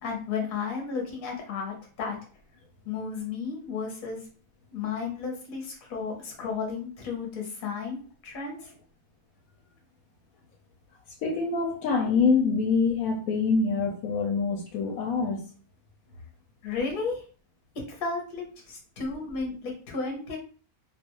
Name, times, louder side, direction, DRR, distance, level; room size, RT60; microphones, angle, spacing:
voice 1, 0.0-2.2 2.8-4.2 4.7-8.7 16.6-17.2 17.9-20.4, left 5 dB, 45° left, 0 dB, 0.8 m, -33 dB
voice 2, 11.2-15.4, left 4 dB, 75° left, 2 dB, 1.0 m, -25 dB
2.4 x 2.3 x 2.9 m, 0.40 s
omnidirectional pair, 1.6 m